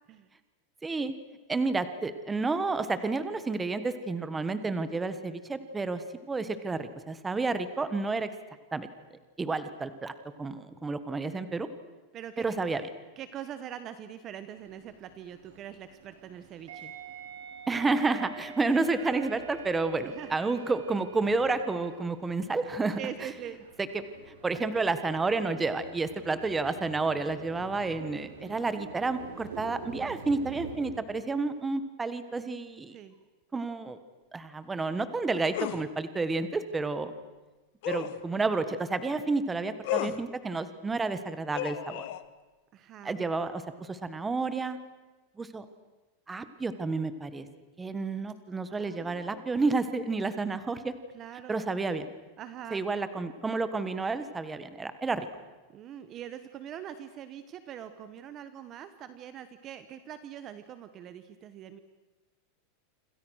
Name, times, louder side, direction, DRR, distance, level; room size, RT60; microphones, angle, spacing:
voice 1, 0.8-1.1 1.5-8.3 8.7-8.9 9.4-10.1 10.4-11.7 12.4-12.9 17.7-23.0 23.8-32.9 33.5-34.0 34.3-37.1 37.9-42.0 43.0-44.8 45.4-45.6 46.3-47.5 47.8-50.9 51.5-52.1 52.7-55.3, right 3 dB, 10° right, 11 dB, 1.3 m, -30 dB
voice 2, 12.1-12.4 13.2-16.9 20.0-20.4 23.0-23.6 26.2-26.4 32.9-33.2 42.7-43.1 48.7-49.5 51.1-51.7 52.4-52.8 55.7-61.8, right 10 dB, 25° right, 11 dB, 1.1 m, -43 dB
sound 1, 14.6-31.0, right 5 dB, 85° right, 5.8 m, -47 dB
sound 2, 35.5-35.8 37.8-38.2 39.8-40.2 41.5-42.2, left 13 dB, 50° left, 1.4 m, -33 dB
28.0 x 27.0 x 6.4 m, 1.2 s
supercardioid pair, 175°, 0 cm